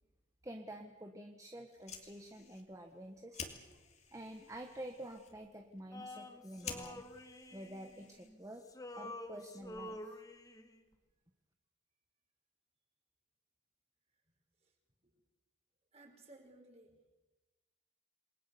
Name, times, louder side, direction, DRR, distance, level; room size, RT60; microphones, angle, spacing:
voice 1, 0.4-3.8 4.1-7.1 7.5-8.7 8.9-10.2, right 1 dB, 15° right, 4 dB, 1.3 m, -49 dB
Fire, 1.6-8.6, left 5 dB, 35° left, 2.7 m, -52 dB
Male singing, 5.9-8.4 8.6-10.8, left 1 dB, 20° left, 1.6 m, -49 dB
voice 2, 14.3-14.7 15.0-15.1 15.9-17.0, right 2 dB, 35° right, 3 dB, 4.9 m, -60 dB
28.0 x 21.0 x 7.1 m, 1.1 s
head